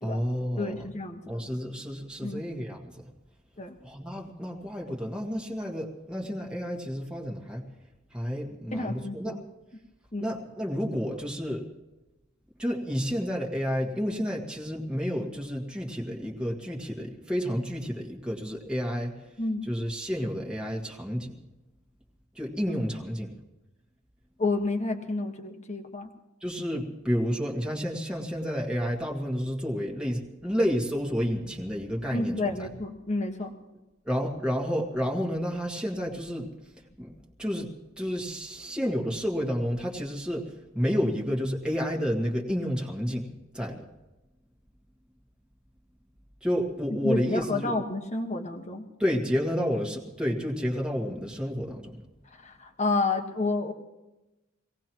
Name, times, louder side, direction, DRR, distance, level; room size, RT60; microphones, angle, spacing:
voice 1, 0.0-0.9 1.3-3.1 3.8-7.7 8.1-9.4 10.2-11.7 12.6-19.1 19.6-21.3 22.4-23.3 26.4-32.7 34.1-36.5 37.0-37.1 37.4-37.7 38.0-43.3 43.5-43.8 46.4-47.8 49.0-52.0, equal, 5° right, -1 dB, 1.8 m, -30 dB
voice 2, 0.6-1.4 2.2-2.4 3.6-3.8 8.7-9.4 10.1-10.3 19.4-19.7 24.4-26.1 32.1-33.5 47.0-48.8 52.4-53.7, left 2 dB, 35° left, 4 dB, 1.5 m, -30 dB
24.5 x 18.0 x 3.1 m, 1.0 s
head